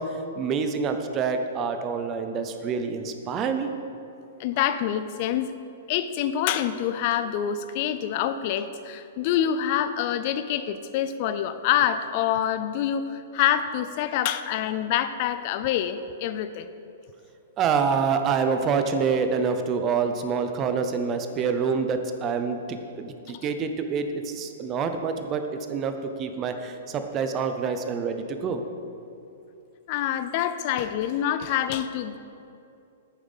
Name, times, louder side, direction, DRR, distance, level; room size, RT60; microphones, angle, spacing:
voice 1, 0.0-3.7 17.6-23.1 23.4-28.6, right 5 dB, 20° right, 7 dB, 0.5 m, -27 dB
voice 2, 4.4-5.5 5.9-16.7 29.9-32.2, left 10 dB, 35° left, 12 dB, 0.4 m, -26 dB
8.9 x 7.2 x 5.5 m, 2.7 s
hypercardioid pair, 170°, 0 cm